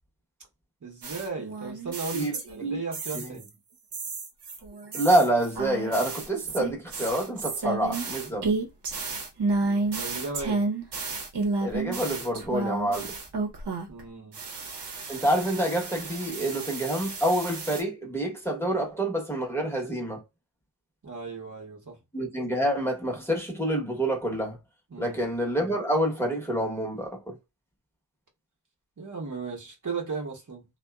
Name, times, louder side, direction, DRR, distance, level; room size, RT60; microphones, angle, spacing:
voice 1, 0.8-3.5 9.6-10.7 13.9-14.4 21.0-22.0 24.9-25.3 29.0-30.6, right 4 dB, 45° right, 1.0 m, -36 dB
sound 1, 1.0-2.6 2.9-3.5 3.9-14.0 14.3-17.8, right 3 dB, 70° right, 0.9 m, -32 dB
voice 2, 4.9-8.6 11.6-13.1 15.1-20.2 22.1-24.6 25.0-27.4, right 1 dB, 5° left, 1.0 m, -27 dB
2.7 x 2.3 x 2.2 m
cardioid pair, 45°, 42 cm